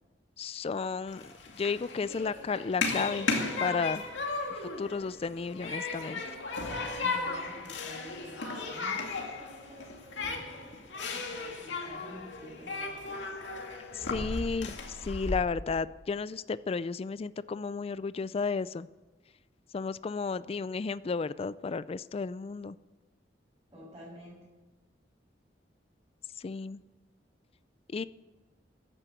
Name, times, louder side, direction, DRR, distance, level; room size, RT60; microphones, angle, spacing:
voice 1, 0.4-3.3 3.6-4.0 4.5-6.2 13.9-18.9 19.7-22.8 26.4-26.8 27.9-28.0, left 4 dB, 35° left, 17 dB, 0.4 m, -33 dB
Human group actions, 1.1-15.4, left 3 dB, 85° left, 2.3 m, -36 dB
voice 2, 7.0-13.4 23.7-24.4, equal, 25° right, -9 dB, 6.4 m, -50 dB
14.0 x 10.5 x 7.9 m, 1.2 s
head